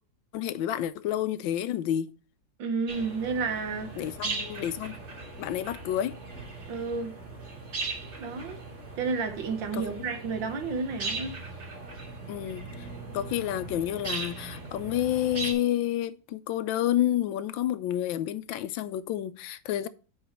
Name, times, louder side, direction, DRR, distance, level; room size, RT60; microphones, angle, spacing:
voice 1, 0.3-2.1 4.0-4.9 5.4-6.2 9.7-10.0 12.3-12.9 13.1-19.9, left 12 dB, 90° left, 1.3 m, -29 dB
voice 2, 2.6-4.0 6.7-7.1 8.2-8.6 9.0-11.4, right 4 dB, 75° right, 1.9 m, -31 dB
sound 1, 2.9-15.5, right 3 dB, 40° right, 1.8 m, -39 dB
7.9 x 4.7 x 4.4 m
omnidirectional pair, 2.1 m